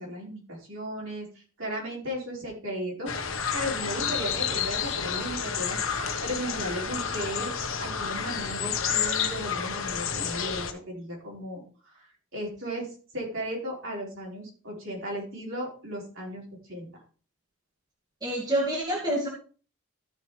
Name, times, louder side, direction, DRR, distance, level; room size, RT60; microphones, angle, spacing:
voice 1, 0.0-3.1 3.5-5.8 6.2-7.5 7.8-11.6 12.3-12.9 13.1-16.9, equal, 60° right, -3 dB, 4.6 m, -35 dB
sound 1, 3.1-10.7, left 7 dB, 65° left, 1.2 m, -30 dB
voice 2, 18.2-19.3, right 1 dB, 20° right, -2 dB, 2.2 m, -27 dB
13.5 x 6.8 x 3.3 m, 0.39 s
head